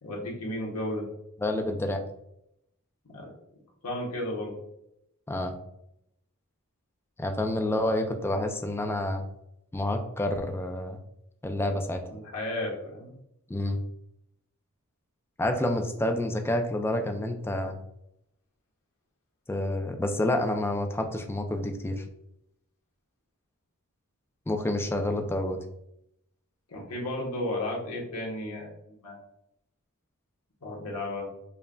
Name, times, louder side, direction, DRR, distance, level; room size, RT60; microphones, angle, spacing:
voice 1, 0.0-1.1 3.1-3.3 3.8-4.5 12.1-13.1 26.7-29.2 30.6-31.3, left 1 dB, 90° left, -2 dB, 1.2 m, -33 dB
voice 2, 1.4-2.0 5.3-5.5 7.2-9.2 9.7-11.0 11.4-12.0 13.5-13.8 15.4-17.8 19.5-22.0 24.5-25.6, left 1 dB, 10° left, 5 dB, 0.4 m, -28 dB
5.3 x 2.6 x 2.2 m, 0.81 s
head